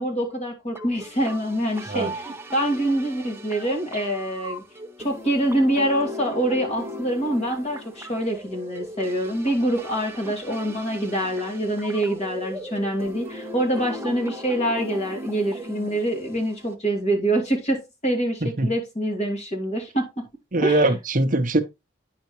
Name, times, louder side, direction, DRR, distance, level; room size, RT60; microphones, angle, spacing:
voice 1, 0.0-4.6 5.0-20.2 20.6-20.9, right 1 dB, 35° left, 2.6 m, -25 dB
sound 1, 0.8-16.7, equal, 10° right, 0.8 m, -38 dB
voice 2, 20.5-21.6, right 2 dB, 40° right, 0.8 m, -21 dB
9.4 x 5.7 x 3.0 m
head